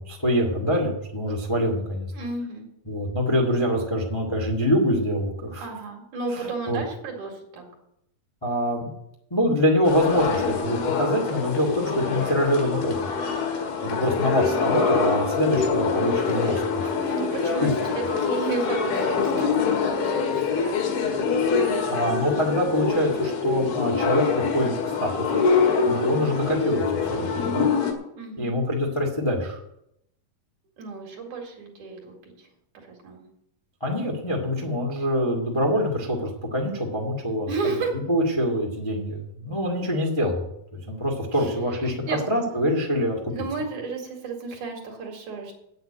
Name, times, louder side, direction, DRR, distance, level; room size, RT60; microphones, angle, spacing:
voice 1, 0.0-2.1 2.9-5.6 6.3-6.8 8.4-8.9 9.3-13.0 13.8-16.9 17.4-17.7 21.9-24.7 25.0-25.4 25.9-27.7 28.4-29.6 33.8-40.4 40.7-43.2, equal, 20° left, -1 dB, 0.7 m, -25 dB
voice 2, 2.1-2.7 5.6-7.7 14.0-14.3 17.1-20.7 25.8-26.1 28.2-28.6 30.8-32.5 32.9-33.2 37.5-37.9 41.4-41.5 41.9-42.2 42.5-42.6 43.3-45.5, right 4 dB, 55° right, 0 dB, 3.4 m, -33 dB
sound 1, 9.8-27.9, left 5 dB, 85° left, 3.8 m, -25 dB
8.9 x 7.8 x 8.8 m, 0.78 s
omnidirectional pair, 4.2 m